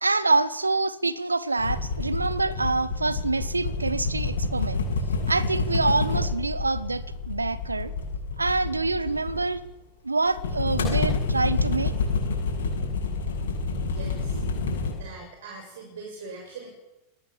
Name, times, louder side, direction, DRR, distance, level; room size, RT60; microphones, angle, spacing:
voice 1, 0.0-4.8 5.3-7.9 8.4-9.6 10.0-11.9, right 3 dB, 80° right, 1.2 m, -26 dB
sound 1, 1.6-9.7 10.3-14.9, left 3 dB, 65° left, 7.9 m, -28 dB
voice 2, 13.9-14.4 14.9-16.7, right 4 dB, 60° right, 6.6 m, -41 dB
20.5 x 18.5 x 7.5 m
figure-of-eight pair, 90°, 0 cm